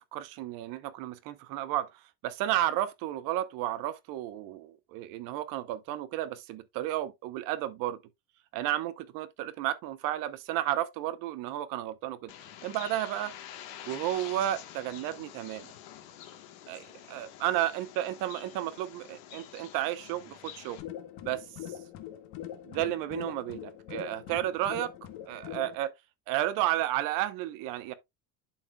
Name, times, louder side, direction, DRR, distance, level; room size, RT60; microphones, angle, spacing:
voice 1, 0.0-8.0 8.5-12.3 12.6-13.3 13.8-15.7 16.7-20.8 21.2-21.4 22.7-24.9 25.3-25.9 26.3-27.9, right 13 dB, 65° right, 0.9 m, -32 dB
Bird, 12.3-20.8, left 11 dB, 85° left, 1.4 m, -47 dB
sound 1, 20.7-25.8, left 11 dB, 65° left, 1.2 m, -42 dB
11.5 x 4.2 x 2.3 m
cardioid pair, 170°, 36 cm